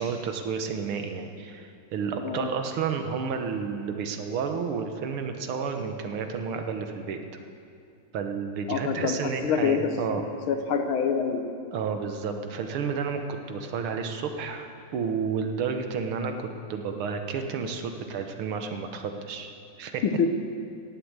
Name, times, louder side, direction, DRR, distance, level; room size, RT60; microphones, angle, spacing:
voice 1, 0.0-7.2 8.1-10.2 11.7-13.2 13.5-19.5 19.8-20.0, right 6 dB, 80° right, 6 dB, 1.9 m, -31 dB
voice 2, 8.7-9.2 9.4-9.9 10.5-11.5 20.0-20.3, left 7 dB, 75° left, 7 dB, 1.8 m, -25 dB
16.5 x 8.3 x 8.1 m, 2.4 s
omnidirectional pair, 2.3 m